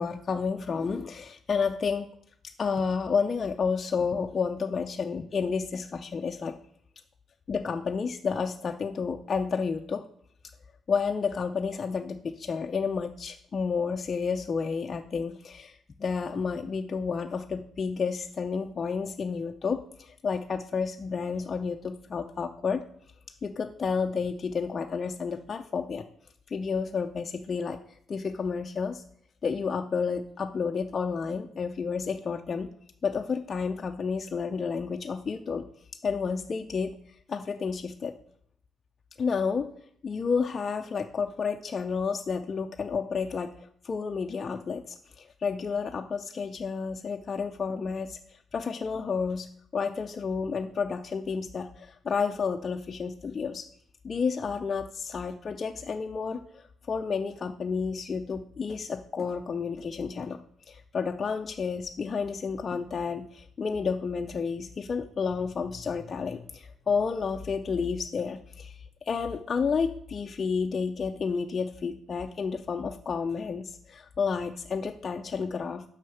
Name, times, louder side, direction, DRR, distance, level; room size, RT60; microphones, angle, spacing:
voice 1, 0.0-2.1 2.6-6.5 7.5-10.0 10.9-22.8 23.4-26.0 26.5-27.8 28.1-29.0 29.4-32.7 33.0-35.7 36.0-36.9 37.3-38.1 39.2-39.7 40.0-43.5 43.8-53.7 54.0-60.4 60.7-75.8, left 5 dB, 40° left, 4 dB, 0.5 m, -31 dB
6.2 x 5.7 x 5.8 m, 0.64 s
cardioid pair, 90°, 0 cm